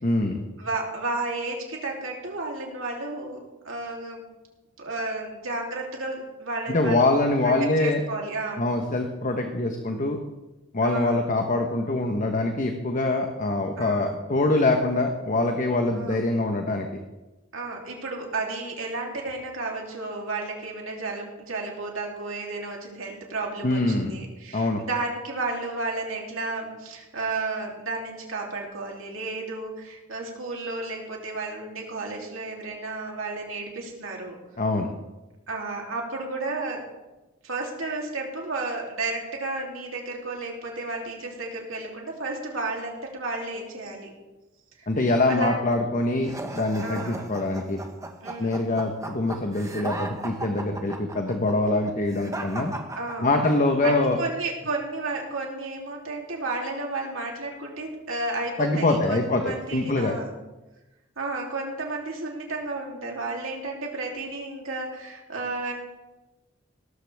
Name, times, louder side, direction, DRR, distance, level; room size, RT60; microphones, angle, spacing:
voice 1, 0.0-0.4 6.7-8.0 8.6-10.2 10.7-16.9 23.6-24.2 24.5-24.8 34.6-34.9 44.9-47.8 48.4-52.7 53.2-54.2 58.6-60.2, left 2 dB, 40° left, 4 dB, 1.1 m, -24 dB
voice 2, 0.6-4.2 4.8-7.0 7.4-8.7 10.8-11.2 13.8-14.2 15.9-16.2 17.5-34.4 35.5-36.8 37.4-44.1 44.8-44.9 45.3-45.6 46.8-47.3 48.2-48.7 52.9-53.4 53.8-60.4 61.2-65.7, right 3 dB, 75° right, -1 dB, 3.2 m, -32 dB
sound 1, 46.2-53.7, right 2 dB, 15° right, 1.3 m, -36 dB
18.0 x 13.5 x 3.5 m, 1.1 s
head